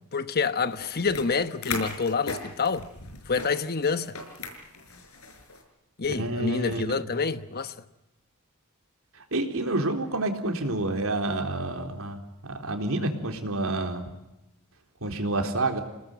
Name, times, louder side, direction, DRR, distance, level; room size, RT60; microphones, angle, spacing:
voice 1, 0.1-2.9 3.3-4.2 6.0-7.7, left 5 dB, 45° left, 1.1 m, -27 dB
sound 1, 0.8-5.6, left 3 dB, 70° left, 5.9 m, -38 dB
voice 2, 6.1-7.1 9.1-14.0 15.0-15.8, right 2 dB, 65° right, 4.0 m, -29 dB
29.0 x 19.0 x 9.2 m
head